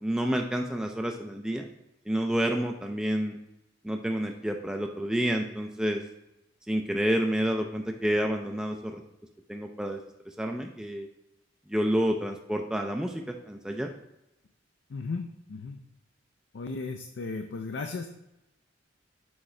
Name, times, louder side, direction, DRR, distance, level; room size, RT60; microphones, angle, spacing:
voice 1, 0.0-1.7 2.1-3.4 3.8-6.0 6.7-9.0 9.5-10.0 10.4-11.1 11.7-13.9, equal, 5° right, 3 dB, 0.3 m, -29 dB
voice 2, 14.9-15.8 16.5-18.1, left 4 dB, 65° left, 5 dB, 0.4 m, -35 dB
6.3 x 4.7 x 3.2 m, 0.88 s
head